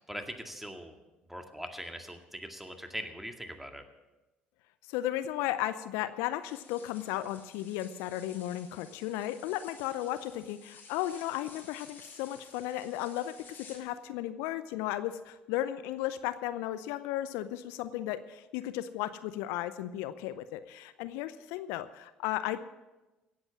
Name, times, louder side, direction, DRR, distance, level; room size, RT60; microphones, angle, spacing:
voice 1, 0.1-0.9 1.3-3.8, equal, 5° right, 5 dB, 2.1 m, -41 dB
voice 2, 4.9-22.6, left 13 dB, 70° left, 13 dB, 0.6 m, -35 dB
sound 1, 6.4-13.8, left 4 dB, 45° left, 4.8 m, -54 dB
17.0 x 8.0 x 7.3 m, 1.1 s
hypercardioid pair, 60°, 5 cm